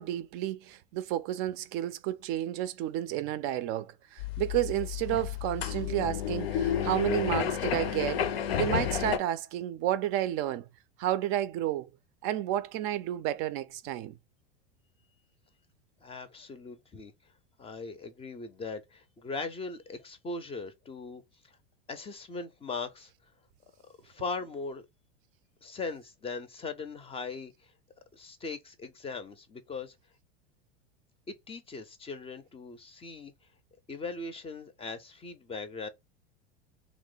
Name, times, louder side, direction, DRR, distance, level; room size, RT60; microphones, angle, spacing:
voice 1, 0.0-8.3 8.6-10.7 11.0-11.9 12.2-14.2, right 13 dB, 45° right, 0.4 m, -31 dB
sound 1, 4.2-9.2, left 9 dB, 70° left, 0.6 m, -31 dB
voice 2, 16.0-17.1 17.6-21.5 21.9-23.1 24.0-24.8 25.6-27.7 28.1-29.9 31.3-33.3 33.9-35.9, left 4 dB, 20° left, 0.5 m, -39 dB
2.9 x 2.1 x 3.8 m
hypercardioid pair, 90°, 31 cm